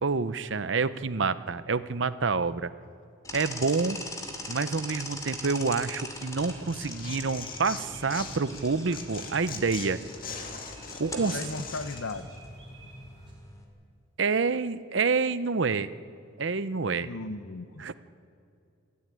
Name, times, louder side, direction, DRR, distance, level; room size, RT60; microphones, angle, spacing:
voice 1, 0.0-2.7 3.3-4.0 4.5-10.0 11.0-11.4 14.2-15.9 16.4-17.1 17.8-17.9, right 4 dB, 65° right, 13 dB, 0.7 m, -28 dB
sound 1, 3.2-13.6, left 2 dB, 15° left, 2.7 m, -42 dB
sound 2, 6.3-13.3, right 1 dB, 25° right, 6.1 m, -48 dB
Tearing, 6.4-8.6 8.9-12.0, left 6 dB, 45° left, 2.0 m, -40 dB
voice 2, 11.2-12.4 17.0-17.9, left 3 dB, 75° left, 9 dB, 0.8 m, -37 dB
27.0 x 12.5 x 9.8 m, 2.5 s
head